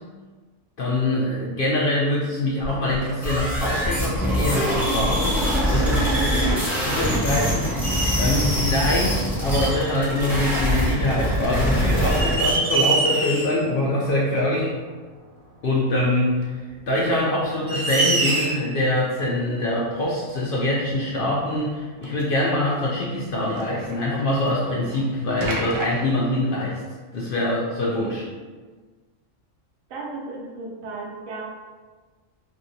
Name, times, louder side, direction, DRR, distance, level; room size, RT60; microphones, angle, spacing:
voice 1, 0.8-6.1 6.8-14.7 15.6-16.5 16.9-26.8 27.1-28.2, left 1 dB, 65° left, -5 dB, 0.5 m, -24 dB
sound 1, 2.6-12.5, equal, ahead, 0.5 m, -23 dB
voice 2, 6.1-6.6 29.9-31.4, right 3 dB, 80° right, -3 dB, 1.1 m, -32 dB
sound 2, 6.7-7.5 7.8-8.2 9.5-9.9 11.3-11.4 11.9-13.7 14.0-14.1 15.7-15.8 16.8-16.9 17.4-17.5 17.7-18.7 20.0-20.1 20.9-21.0 21.3-21.4 22.0-22.2 23.6-24.5 24.9-25.0 25.4-25.9, right 3 dB, 60° right, 0.5 m, -26 dB
2.8 x 2.8 x 2.6 m, 1.4 s
omnidirectional pair, 1.4 m